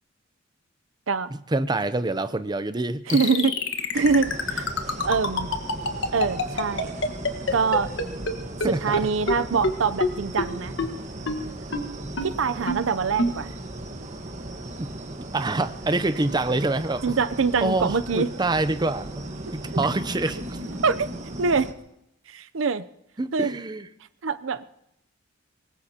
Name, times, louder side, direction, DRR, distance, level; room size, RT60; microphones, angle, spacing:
voice 1, 1.5-3.2 8.6-8.8 14.8-14.9 15.2-17.1 17.6-19.1 19.5-20.6 23.2-23.9, right 2 dB, 20° right, 12 dB, 0.6 m, -26 dB
sound 1, 3.1-8.3 8.6-8.7 8.9-9.0 9.3-9.4 9.6-9.7 10.0-10.1 10.4-10.5 10.8-10.9 11.3-11.4 11.7-11.8 12.2-12.3 12.7-12.8 13.2-13.3, left 3 dB, 65° left, 1.4 m, -24 dB
voice 2, 3.1-3.5 3.9-4.7 5.0-5.5 6.1-6.9 7.5-7.9 8.7-10.7 12.2-13.5 17.0-18.3 20.8-21.1 21.4-21.7 22.3-22.8 23.3-23.5 24.2-24.6, right 5 dB, 70° right, 13 dB, 0.6 m, -24 dB
sound 2, 3.9-21.7, right 1 dB, 35° right, 1.3 m, -36 dB
24.5 x 20.5 x 2.9 m, 0.82 s
head